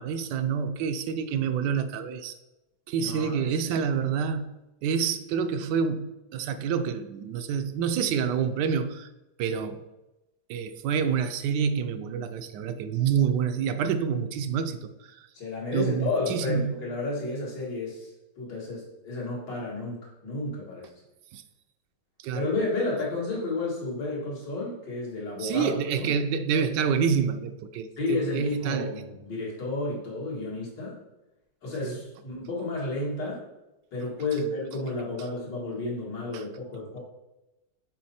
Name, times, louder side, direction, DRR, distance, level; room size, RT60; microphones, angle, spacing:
voice 1, 0.0-2.4 2.9-4.5 4.8-9.1 9.4-9.8 10.5-15.3 15.7-16.7 21.3-21.4 22.2-22.5 25.4-29.0 31.8-32.0 36.3-36.4, right 7 dB, 80° right, 9 dB, 1.2 m, -27 dB
voice 2, 3.0-3.8 15.3-20.9 22.3-25.7 26.0-26.1 28.0-31.0 31.6-33.4 33.9-37.0, left 2 dB, 85° left, -5 dB, 2.7 m, -32 dB
6.4 x 4.4 x 4.2 m, 0.99 s
omnidirectional pair, 1.9 m